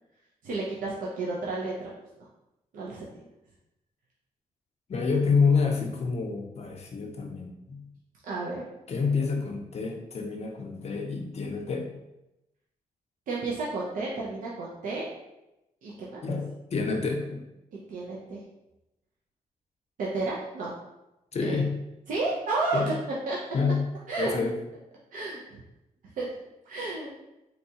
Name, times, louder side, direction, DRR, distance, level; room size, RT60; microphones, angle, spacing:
voice 1, 0.4-1.9 2.7-3.1 8.3-8.7 13.3-15.1 15.8-16.2 17.9-18.4 20.0-20.7 21.5-21.6 22.1-22.9 23.3-23.4 24.1-24.3 25.1-25.6 26.2-26.3 26.7-27.1, right 3 dB, 80° right, -5 dB, 0.6 m, -31 dB
voice 2, 4.9-7.9 8.9-11.9 16.2-17.4 21.3-21.7 22.7-23.0 23.5-23.9 24.2-24.6, left 4 dB, 50° left, 2 dB, 0.6 m, -28 dB
3.9 x 2.3 x 2.8 m, 0.94 s
cardioid pair, 65°, 14 cm